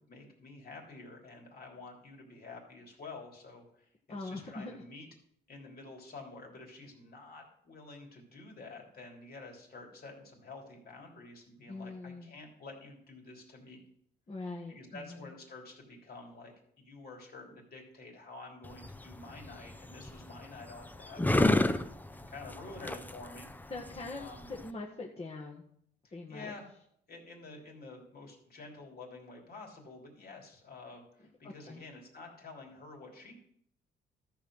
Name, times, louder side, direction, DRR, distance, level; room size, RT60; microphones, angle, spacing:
voice 1, 0.0-3.9 4.2-5.1 5.5-13.8 14.7-21.8 22.1-23.7 24.2-24.5 26.0-26.7 27.1-33.3, left 3 dB, 50° left, 1 dB, 3.3 m, -49 dB
voice 2, 4.1-4.7 11.7-12.3 14.3-15.3 23.7-24.2 24.5-25.6 26.1-26.5 31.4-31.8, left 3 dB, 30° left, -2 dB, 1.7 m, -42 dB
sound 1, 18.6-24.7, left 2 dB, 10° left, 0.7 m, -32 dB
13.5 x 5.8 x 6.4 m, 0.69 s
cardioid pair, 90°, 20 cm